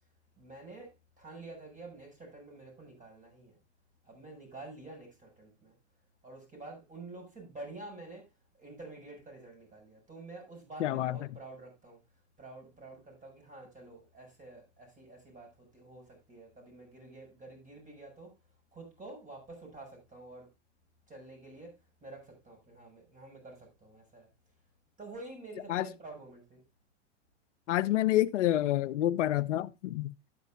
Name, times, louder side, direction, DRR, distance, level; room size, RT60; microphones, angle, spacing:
voice 1, 0.4-3.6 4.0-5.7 6.2-8.3 8.5-12.0 12.4-18.3 18.7-20.5 21.1-21.7 22.0-24.3 25.0-26.6, right 2 dB, 20° right, 6.9 m, -49 dB
voice 2, 10.8-11.2 25.7-25.9 27.7-30.1, left 14 dB, 75° left, 0.6 m, -28 dB
12.0 x 9.5 x 2.6 m
hypercardioid pair, 105°, 36 cm